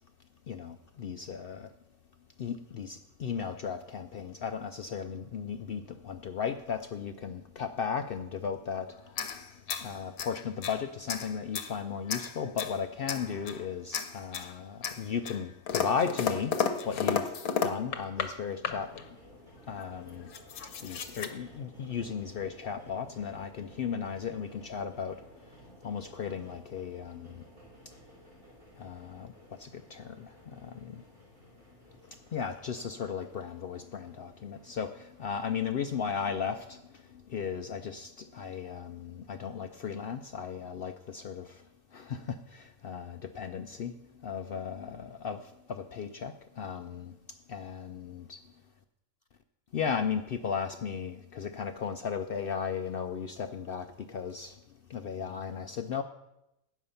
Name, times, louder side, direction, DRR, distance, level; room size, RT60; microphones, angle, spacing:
voice 1, 0.5-1.7 2.4-16.6 16.8-18.9 19.7-20.3 20.8-27.4 27.9-28.0 28.7-31.0 32.1-48.4 49.7-54.6 54.9-56.0, left 6 dB, 70° left, 0.5 m, -36 dB
sound 1, 9.1-10.8 11.1-11.7 12.1-12.8 13.1-13.6 13.9-14.5 14.8-18.3 18.6-19.1 19.8-19.9 20.1-21.3, left 7 dB, 85° left, 1.4 m, -33 dB
sound 2, 18.8-37.2, equal, 45° right, 4.2 m, -56 dB
10.5 x 8.4 x 5.6 m
omnidirectional pair, 1.5 m